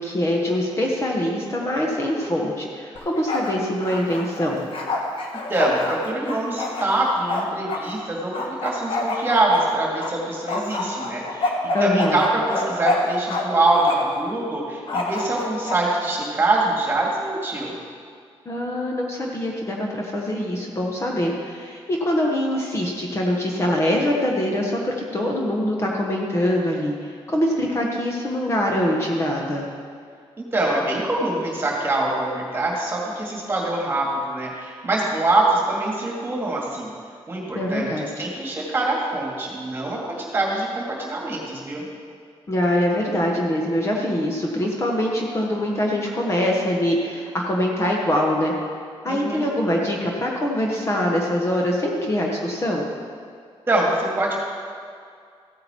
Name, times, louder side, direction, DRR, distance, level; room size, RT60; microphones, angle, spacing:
voice 1, 0.0-4.7 11.7-12.2 18.4-29.7 37.5-38.1 42.5-48.5 49.0-52.8, left 1 dB, 25° left, -1 dB, 1.1 m, -23 dB
Bark, 3.0-3.5 3.8-7.8 8.3-10.1 10.5-13.4 13.7-14.2 14.9-15.8, left 2 dB, 60° left, 1.4 m, -27 dB
voice 2, 5.5-11.5 11.8-17.7 30.4-36.9 37.3-41.9 49.0-49.5 53.7-54.4, right 2 dB, 20° right, -2 dB, 2.2 m, -24 dB
15.0 x 8.7 x 4.4 m, 2.2 s
wide cardioid pair, 175°, 10 cm